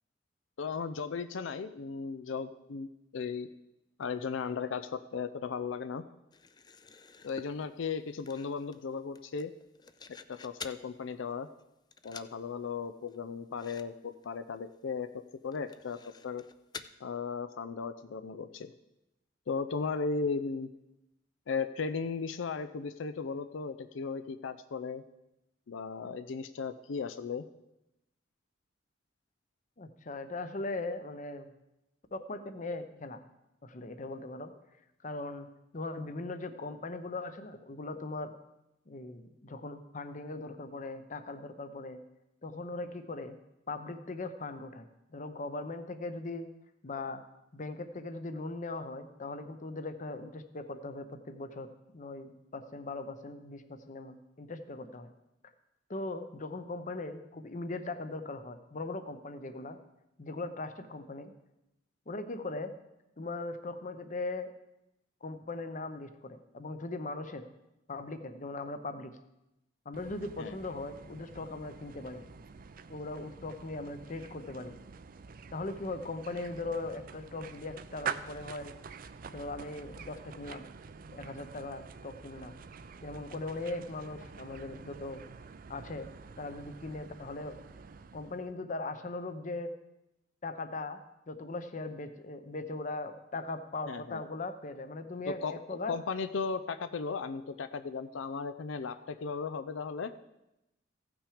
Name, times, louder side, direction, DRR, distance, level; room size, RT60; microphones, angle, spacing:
voice 1, 0.6-2.9 3.1-3.5 4.0-6.0 7.2-9.5 10.3-11.5 12.0-15.1 15.4-16.4 17.0-18.7 19.5-20.7 21.5-25.0 25.7-27.5 70.4-70.6 93.9-94.2 95.3-100.1, left 5 dB, 85° left, 11 dB, 0.5 m, -36 dB
sound 1, 6.3-10.9 11.3-11.6 11.9-12.4 12.7-12.8 13.1-13.2 13.5-13.9 14.1-14.3 14.7-14.8 15.5-16.9, left 5 dB, 20° left, 0.3 m, -49 dB
voice 2, 29.8-31.5 32.1-33.2 33.6-34.5 35.0-35.5 35.7-38.4 38.9-42.0 42.4-43.4 43.7-46.5 46.8-47.2 47.5-55.1 55.9-59.8 60.2-61.3 62.1-62.7 63.2-64.5 65.2-67.4 67.9-69.2 69.8-72.2 72.9-74.8 75.5-78.7 79.3-80.7 81.1-82.6 83.0-85.2 85.7-86.1 86.4-87.6 88.1-89.7 90.4-91.0 91.3-96.0, left 2 dB, 40° left, 9 dB, 0.8 m, -39 dB
sound 2, 69.9-88.6, right 6 dB, 50° right, 0.4 m, -47 dB
15.5 x 6.1 x 4.9 m, 0.90 s
head